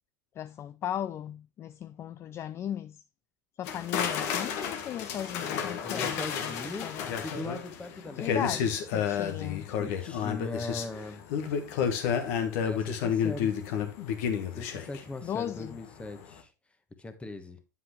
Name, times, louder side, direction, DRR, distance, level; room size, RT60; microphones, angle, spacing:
voice 1, 0.4-3.0 3.6-6.6 6.8-7.1 8.1-9.7 15.2-15.7, left 10 dB, 25° left, 0.3 m, -37 dB
sound 1, 3.6-15.7 16.0-16.3, left 7 dB, 55° left, 1.4 m, -31 dB
voice 2, 5.8-8.8 9.7-11.2 12.6-13.6 14.5-16.5 17.0-17.6, left 2 dB, 10° left, 1.3 m, -40 dB
8.5 x 7.5 x 3.1 m
hypercardioid pair, 90°, 10 cm